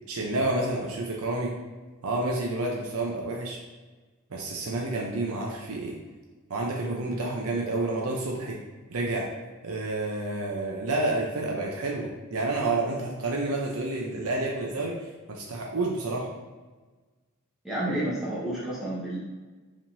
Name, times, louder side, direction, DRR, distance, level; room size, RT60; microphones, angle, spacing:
voice 1, 0.1-1.6 2.0-3.6 4.3-6.0 6.5-8.6 8.9-9.3 9.6-15.0 15.3-16.3, right 2 dB, 80° right, -1 dB, 0.7 m, -29 dB
voice 2, 17.6-19.2, right 1 dB, ahead, -9 dB, 1.2 m, -30 dB
5.0 x 3.6 x 2.7 m, 1.3 s
head